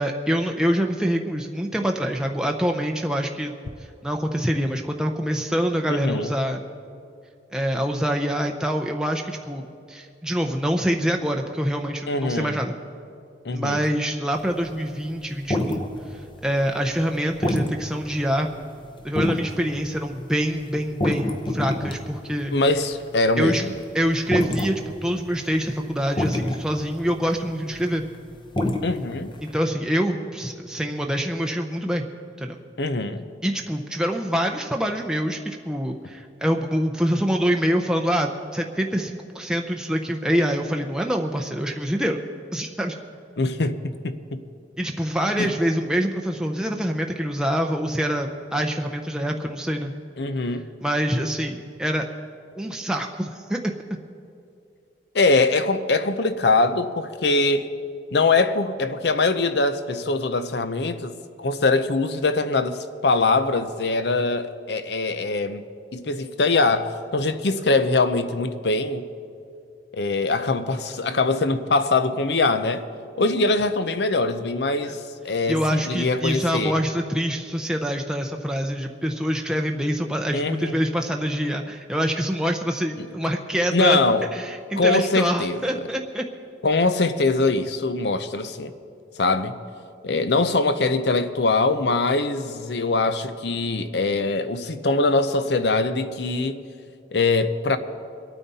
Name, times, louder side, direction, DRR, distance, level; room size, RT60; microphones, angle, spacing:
voice 1, 0.0-3.5 4.0-6.6 7.5-9.6 9.9-12.7 13.5-15.8 16.1-18.5 19.0-22.5 23.4-23.6 23.9-28.0 29.4-32.0 32.4-32.6 33.4-42.2 42.5-43.0 44.8-49.9 50.8-52.1 52.6-53.7 74.8-74.9 75.5-84.0 84.3-86.2, equal, 5° right, 0.6 m, -25 dB
voice 2, 5.9-6.3 12.1-12.6 13.4-13.8 22.5-23.7 28.8-29.3 32.8-33.2 43.4-44.4 45.4-45.5 50.2-50.6 55.1-57.7 58.1-65.6 65.9-69.1 69.9-72.8 73.2-76.7 80.3-80.8 83.0-83.1 83.7-84.3 84.8-85.9 86.6-88.7 89.2-89.6 90.0-96.6 97.1-97.8, left 3 dB, 70° left, 0.7 m, -22 dB
sound 1, 14.4-17.1 17.3-29.5, left 1 dB, 25° left, 0.9 m, -27 dB
24.0 x 9.2 x 4.1 m
head